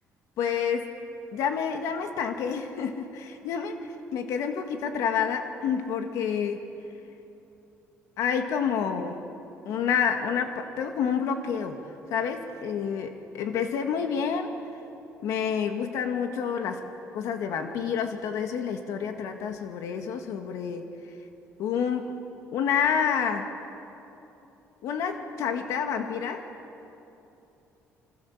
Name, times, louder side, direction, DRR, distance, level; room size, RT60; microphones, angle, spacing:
voice 1, 0.4-1.0 1.3-6.6 8.2-9.3 9.7-11.8 12.1-14.5 15.2-20.9 21.6-22.1 22.5-23.5 24.8-26.4, left 7 dB, 85° left, 5 dB, 2.0 m, -28 dB
27.0 x 25.5 x 7.3 m, 3.0 s
cardioid pair, 160°, 5 cm